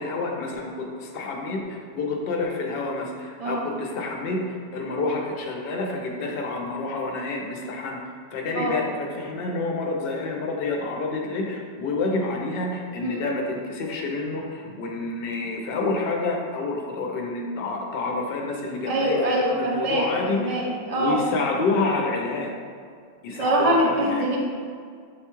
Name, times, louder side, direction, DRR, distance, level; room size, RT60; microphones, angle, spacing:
voice 1, 0.0-8.0 8.3-20.7 21.0-22.5 23.2-24.3, left 3 dB, 65° left, 0 dB, 0.8 m, -28 dB
voice 2, 18.9-21.2 23.4-24.4, right 1 dB, 40° right, -2 dB, 0.7 m, -24 dB
6.5 x 2.2 x 2.9 m, 2.1 s
omnidirectional pair, 1.1 m